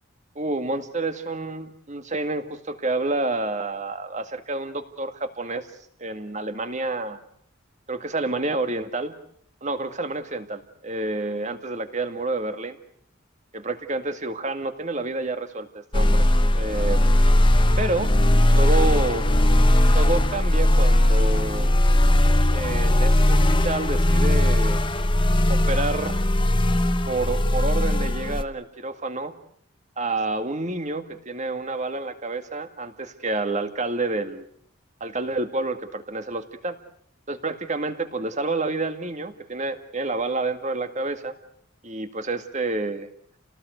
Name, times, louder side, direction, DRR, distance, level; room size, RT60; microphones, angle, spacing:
voice 1, 0.4-5.7 6.0-7.2 7.9-9.1 9.6-12.8 13.5-16.3 16.5-17.2 17.8-18.2 18.6-19.3 19.9-21.7 22.5-24.8 25.5-26.2 27.1-29.3 30.0-34.5 35.0-36.8 37.3-41.3 41.8-43.1, right 2 dB, 35° right, 9 dB, 2.1 m, -29 dB
sound 1, 15.9-28.4, left 1 dB, 25° left, 1.1 m, -19 dB
29.5 x 19.0 x 8.1 m, 0.65 s
head